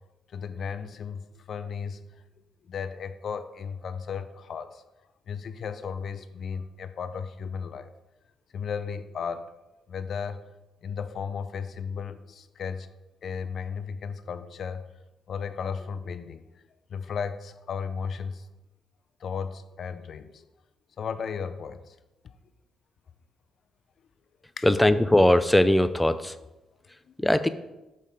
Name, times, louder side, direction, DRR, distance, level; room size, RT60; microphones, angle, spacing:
voice 1, 0.3-2.2 2.6-4.8 5.3-7.9 8.5-9.5 9.9-10.5 10.8-12.9 13.2-14.9 15.3-16.6 16.9-18.5 19.2-20.4 21.0-22.0 22.2-22.4 24.6-24.7 27.1-27.3, left 6 dB, 60° left, 12 dB, 0.5 m, -35 dB
voice 2, 24.6-26.4 27.2-27.5, left 1 dB, 10° left, 12 dB, 0.5 m, -20 dB
6.6 x 5.3 x 4.9 m, 0.98 s
supercardioid pair, 65°, 0 cm